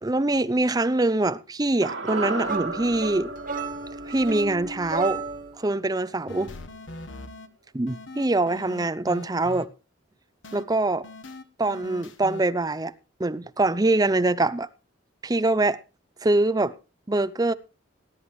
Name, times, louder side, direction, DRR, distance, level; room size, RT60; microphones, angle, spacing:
voice 1, 0.0-3.3 4.1-5.2 5.6-6.5 7.7-9.7 10.5-11.1 11.6-12.9 13.2-14.7 15.2-15.8 16.2-16.8 17.1-17.5, right 2 dB, 20° right, 0.5 m, -24 dB
sound 1, 1.8-6.1 6.4-6.5, right 3 dB, 80° right, 2.6 m, -35 dB
sound 2, 2.4-5.6, right 4 dB, 45° right, 2.3 m, -33 dB
sound 3, 6.3-7.5 7.9-9.7 10.4-10.6 11.0-12.4, left 2 dB, 75° left, 1.2 m, -41 dB
19.0 x 10.0 x 3.2 m
head